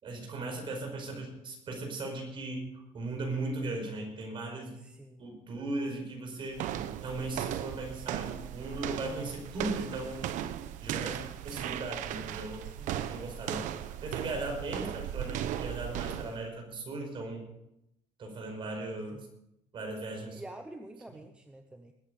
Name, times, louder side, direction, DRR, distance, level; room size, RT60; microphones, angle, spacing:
voice 1, 0.0-4.8 5.2-6.6 7.0-10.3 10.8-13.7 14.0-17.4 18.2-19.3 19.7-20.4, right 2 dB, 40° right, 2 dB, 5.2 m, -38 dB
voice 2, 4.7-5.3 12.6-13.3 14.7-14.9 19.1-19.3 20.3-21.9, right 1 dB, 10° right, 6 dB, 0.8 m, -48 dB
sound 1, 6.5-16.4, right 11 dB, 75° right, 0.9 m, -37 dB
21.0 x 9.4 x 5.2 m, 0.85 s
cardioid pair, 150°, 13 cm